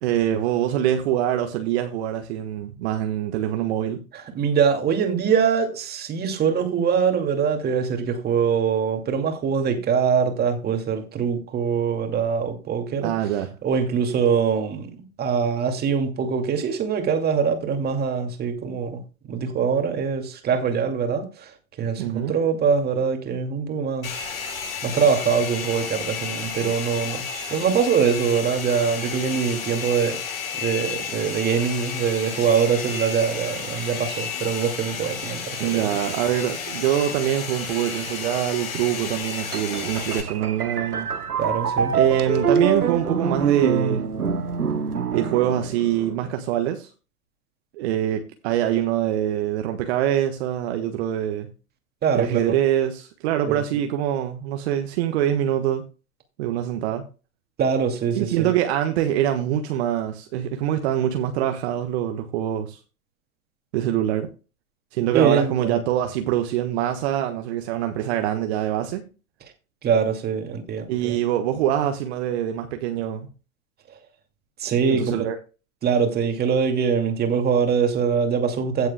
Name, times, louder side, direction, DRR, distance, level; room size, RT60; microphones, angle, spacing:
voice 1, 0.0-4.0 13.0-13.5 22.0-22.3 35.6-41.1 41.9-44.0 45.1-46.9 47.7-51.5 52.1-55.8 56.4-57.0 58.1-62.8 63.7-64.3 64.9-69.0 70.9-73.3 74.9-75.3, right 11 dB, 45° right, 1.4 m, -24 dB
voice 2, 4.1-13.1 13.6-14.9 15.2-19.0 19.3-24.2 24.8-35.9 41.4-41.9 52.0-52.4 53.5-53.6 57.6-58.5 65.1-65.8 69.8-71.2 74.6-75.2 75.8-78.9, right 6 dB, 20° right, 2.4 m, -23 dB
Domestic sounds home sounds, 24.0-40.2, left 6 dB, 60° left, 5.6 m, -32 dB
sound 1, 39.5-46.2, right 6 dB, 85° right, 1.1 m, -25 dB
16.5 x 7.4 x 2.3 m
figure-of-eight pair, 110°, 44 cm